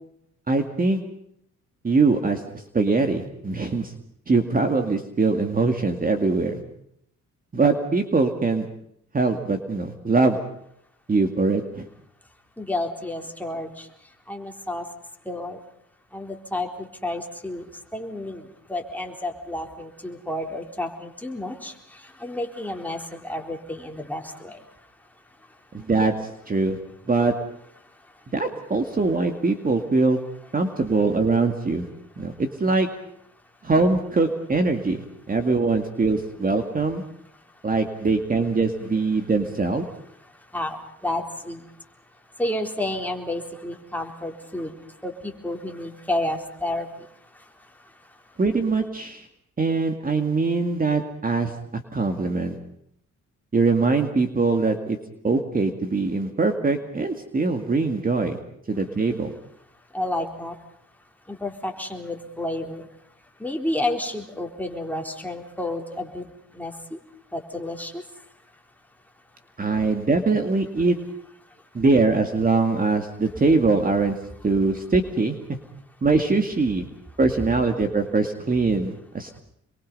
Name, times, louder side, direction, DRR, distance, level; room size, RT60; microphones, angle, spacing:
voice 1, 0.5-1.0 1.8-3.9 4.3-6.6 7.5-8.7 9.1-10.4 11.1-11.9 25.7-26.1 26.5-26.8 27.1-27.3 28.3-30.2 30.5-31.9 32.2-32.9 33.6-37.0 37.6-39.8 48.4-49.3 49.6-52.6 53.5-55.0 55.2-58.4 58.7-59.3 69.6-71.0 71.7-74.2 74.4-75.6 76.0-76.8 77.2-79.4, right 3 dB, 30° right, 6 dB, 2.2 m, -22 dB
voice 2, 12.6-13.9 14.3-14.9 15.3-15.6 16.1-17.7 17.9-24.6 40.5-41.7 42.4-44.7 45.0-47.1 59.9-60.6 61.3-62.8 63.4-66.3 66.5-67.0 67.3-68.0, left 1 dB, 5° left, 2 dB, 3.9 m, -31 dB
27.0 x 23.0 x 5.5 m, 0.73 s
cardioid pair, 90°, 30 cm